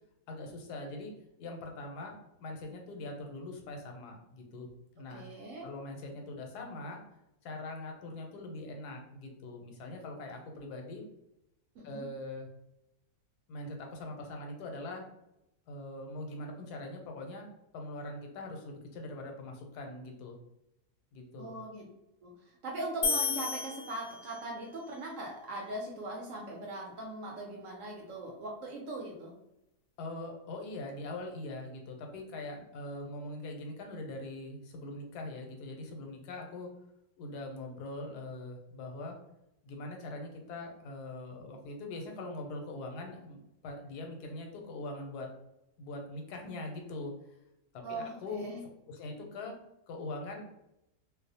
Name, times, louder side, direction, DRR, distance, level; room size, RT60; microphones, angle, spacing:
voice 1, 0.3-1.1 1.4-4.7 4.9-5.2 5.6-7.0 7.4-11.0 11.8-12.5 13.5-15.1 15.7-17.5 17.7-20.4 21.1-21.5 30.0-36.7 37.2-39.2 39.6-45.3 45.8-47.1 47.7-48.6 48.9-49.6 49.9-50.5, left 2 dB, 90° left, 2 dB, 1.2 m, -42 dB
voice 2, 5.1-5.7 11.8-12.1 21.4-21.8 22.2-22.3 22.6-29.3 47.8-48.6, right 2 dB, 70° right, -1 dB, 0.8 m, -40 dB
sound 1, 23.0-24.6, left 5 dB, 70° left, 0.8 m, -33 dB
2.6 x 2.0 x 2.7 m, 0.85 s
omnidirectional pair, 1.7 m